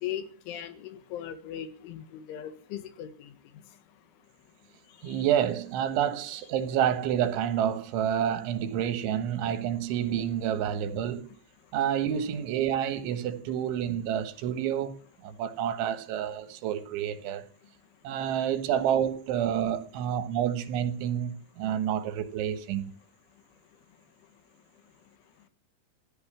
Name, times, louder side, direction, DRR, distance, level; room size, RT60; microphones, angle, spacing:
voice 1, 0.0-3.3 5.0-5.2, left 10 dB, 90° left, 4.2 m, -38 dB
voice 2, 5.0-11.3 11.7-17.5 18.0-22.9, right 9 dB, 80° right, 3.7 m, -29 dB
16.0 x 11.5 x 7.4 m
omnidirectional pair, 5.3 m